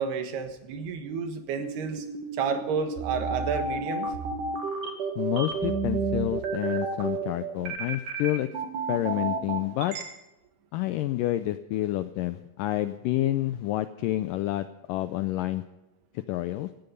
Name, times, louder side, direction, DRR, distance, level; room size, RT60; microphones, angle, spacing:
voice 1, 0.0-2.1 2.3-4.1, right 6 dB, 80° right, 7 dB, 3.6 m, -30 dB
sound 1, 1.6-10.0, right 4 dB, 60° right, 3.4 m, -31 dB
voice 2, 5.2-8.5 8.9-10.0 10.7-15.6 16.1-16.7, left 15 dB, 85° left, 11 dB, 1.9 m, -29 dB
17.0 x 14.5 x 5.4 m, 0.98 s
omnidirectional pair, 4.5 m